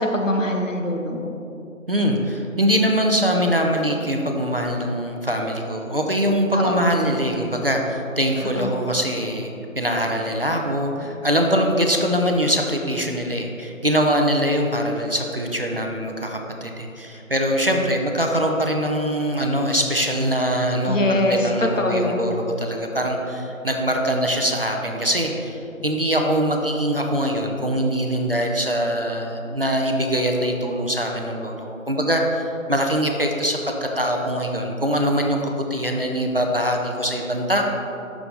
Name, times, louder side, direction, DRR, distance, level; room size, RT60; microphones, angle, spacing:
voice 1, 0.0-1.4 6.5-6.9 8.6-8.7 20.9-22.2, left 1 dB, 65° left, 3 dB, 1.0 m, -23 dB
voice 2, 1.9-37.6, equal, 45° right, 2 dB, 0.5 m, -23 dB
6.7 x 6.1 x 3.8 m, 2.8 s
figure-of-eight pair, 165°, 42 cm